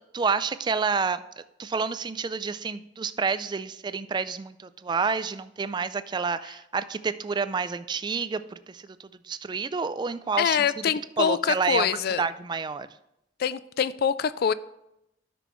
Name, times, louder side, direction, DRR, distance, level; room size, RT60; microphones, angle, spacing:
voice 1, 0.1-1.2 1.6-10.8 11.2-11.9 12.2-12.9, right 5 dB, 25° right, 0.3 m, -29 dB
voice 2, 10.4-12.2 13.4-14.5, left 7 dB, 55° left, 0.3 m, -25 dB
12.5 x 6.1 x 3.1 m
head